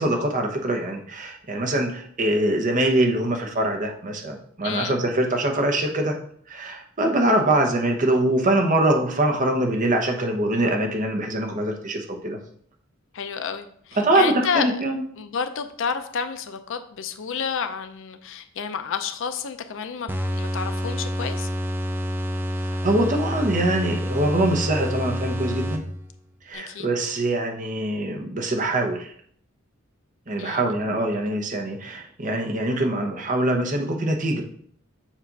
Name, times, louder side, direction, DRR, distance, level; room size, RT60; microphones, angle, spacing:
voice 1, 0.0-6.2 6.5-12.4 14.0-15.0 22.7-25.8 26.5-29.1 30.3-34.4, right 1 dB, 40° right, 2 dB, 0.8 m, -23 dB
voice 2, 4.6-5.0 13.1-14.8 15.2-21.5 26.5-26.9 30.4-30.7, left 6 dB, 65° left, 8 dB, 0.5 m, -30 dB
sound 1, 20.1-26.2, equal, 10° right, 0.4 m, -28 dB
7.2 x 2.5 x 5.3 m, 0.62 s
head